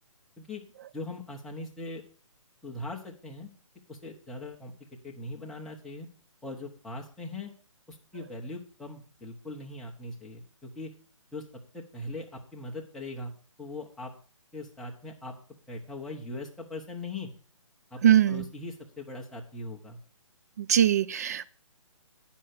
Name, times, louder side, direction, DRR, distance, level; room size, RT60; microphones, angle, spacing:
voice 1, 0.9-2.0 2.6-3.5 3.9-4.7 5.0-6.1 6.4-7.5 7.9-10.9 11.3-11.4 11.7-13.3 13.6-14.1 14.5-15.4 15.7-17.3 17.9-18.0 18.3-20.0, left 2 dB, ahead, -3 dB, 1.0 m, -40 dB
voice 2, 18.0-18.4 20.6-21.5, right 10 dB, 30° right, 16 dB, 0.4 m, -22 dB
10.0 x 5.7 x 6.5 m, 0.41 s
hypercardioid pair, 160°, 17 cm